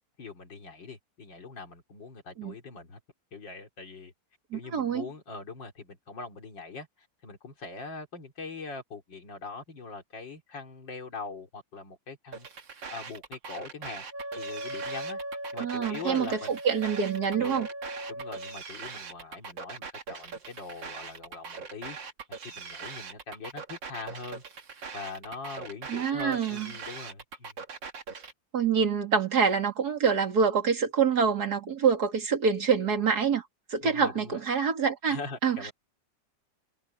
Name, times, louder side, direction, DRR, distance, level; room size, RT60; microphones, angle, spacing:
voice 1, 0.2-3.0 3.3-4.1 4.5-6.9 7.2-12.5 12.9-14.0 14.4-15.2 15.5-16.6 17.4-17.7 18.1-22.0 22.4-24.4 24.9-27.5 33.8-34.4 35.1-35.7, left 4 dB, 90° left, 4.0 m, -42 dB
voice 2, 4.5-5.0 15.6-17.7 25.9-26.7 28.5-33.4 33.7-35.6, right 6 dB, 60° right, 3.0 m, -26 dB
sound 1, 12.3-28.3, right 5 dB, 90° right, 2.9 m, -41 dB
Wind instrument woodwind instrument, 14.1-18.6, right 1 dB, 5° right, 7.8 m, -39 dB
omnidirectional pair, 1.9 m